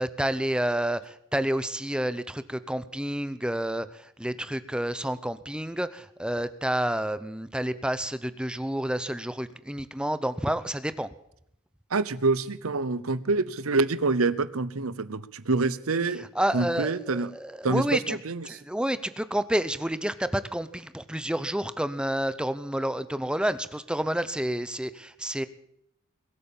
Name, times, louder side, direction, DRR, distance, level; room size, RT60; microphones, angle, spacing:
voice 1, 0.0-11.1 16.4-18.2 18.5-25.5, right 1 dB, 5° right, 13 dB, 0.7 m, -29 dB
voice 2, 11.9-16.3 16.5-17.3 17.6-18.6, right 3 dB, 75° right, 16 dB, 0.9 m, -26 dB
22.0 x 8.4 x 7.2 m, 0.73 s
head